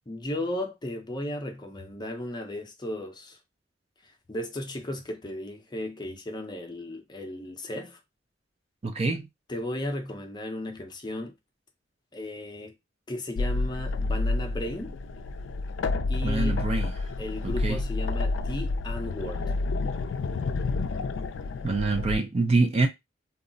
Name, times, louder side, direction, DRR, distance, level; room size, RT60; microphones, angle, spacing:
voice 1, 0.1-3.4 4.3-8.0 9.5-11.3 12.1-12.7 13.1-15.0 16.1-16.7 17.2-19.4, left 1 dB, 25° left, 0.6 m, -35 dB
voice 2, 8.8-9.3 16.2-16.9 17.4-17.8 21.6-22.9, right 3 dB, 35° right, 0.5 m, -25 dB
sound 1, 13.4-22.2, left 3 dB, 75° left, 0.3 m, -29 dB
2.3 x 2.0 x 3.8 m
head